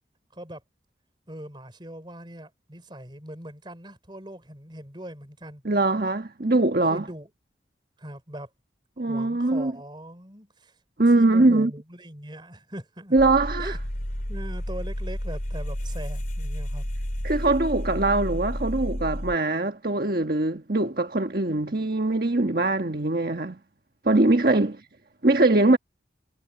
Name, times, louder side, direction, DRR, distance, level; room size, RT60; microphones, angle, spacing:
voice 1, 1.3-5.6 6.8-7.3 8.0-8.5 9.1-10.8 11.1-13.8 14.3-16.8 24.5-24.7, right 1 dB, 25° right, 3.9 m, -40 dB
voice 2, 5.6-7.0 9.0-9.7 11.0-11.7 13.1-13.7 17.2-23.6 24.0-24.7 25.2-25.8, right 2 dB, 55° right, 1.4 m, -22 dB
sound 1, 13.2-19.4, equal, 50° left, 3.5 m, -31 dB
head